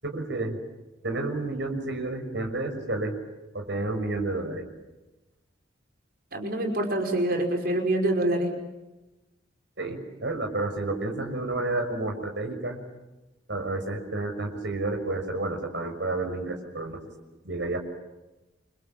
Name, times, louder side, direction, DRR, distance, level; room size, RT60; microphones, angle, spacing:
voice 1, 0.0-0.6 1.0-3.2 3.5-4.6 9.8-12.8 13.5-17.0 17.4-17.8, right 2 dB, 70° right, 4 dB, 6.3 m, -30 dB
voice 2, 6.3-8.5, right 1 dB, 55° right, 4 dB, 5.3 m, -25 dB
30.0 x 26.0 x 7.6 m, 1.0 s
head